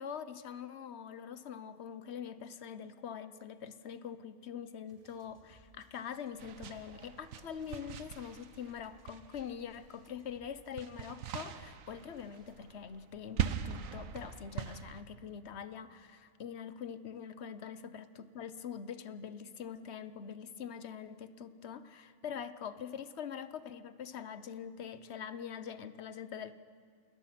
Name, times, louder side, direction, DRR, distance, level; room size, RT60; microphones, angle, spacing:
voice 1, 0.0-26.5, left 7 dB, 55° left, 1.1 m, -44 dB
sound 1, 4.9-12.7, right 1 dB, 40° right, 2.1 m, -65 dB
sound 2, 6.4-9.9 10.2-15.0, right 8 dB, 80° right, 1.2 m, -41 dB
29.0 x 20.5 x 6.0 m
omnidirectional pair, 1.4 m